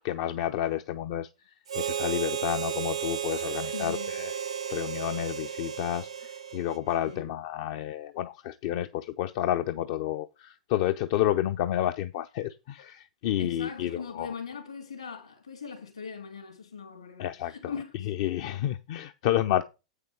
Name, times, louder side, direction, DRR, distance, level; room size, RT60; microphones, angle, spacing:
voice 1, 0.0-4.3 4.7-14.3 17.2-17.7 18.0-19.6, left 12 dB, 50° left, 0.5 m, -30 dB
Harmonica, 1.7-7.2, right 9 dB, 70° right, 0.7 m, -34 dB
voice 2, 3.7-4.2 7.0-7.3 13.4-18.1, left 6 dB, 75° left, 3.3 m, -40 dB
8.4 x 6.6 x 4.8 m
figure-of-eight pair, 95°, 3 cm